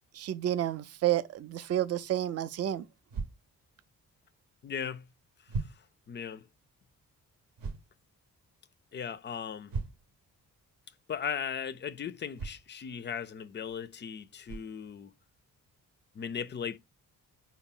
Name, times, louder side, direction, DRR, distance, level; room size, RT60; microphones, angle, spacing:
voice 1, 0.1-2.9, right 12 dB, 45° right, 0.4 m, -30 dB
sound 1, 3.1-3.3 4.7-4.8 5.5-5.8 7.6-7.9 9.7-10.1 12.3-12.6 13.7-13.8 14.5-14.7, right 4 dB, 60° right, 0.8 m, -36 dB
voice 2, 4.6-5.1 6.1-6.4 8.9-9.7 11.1-15.1 16.2-16.8, left 7 dB, 30° left, 0.4 m, -37 dB
4.2 x 2.0 x 3.6 m
supercardioid pair, 50°, 37 cm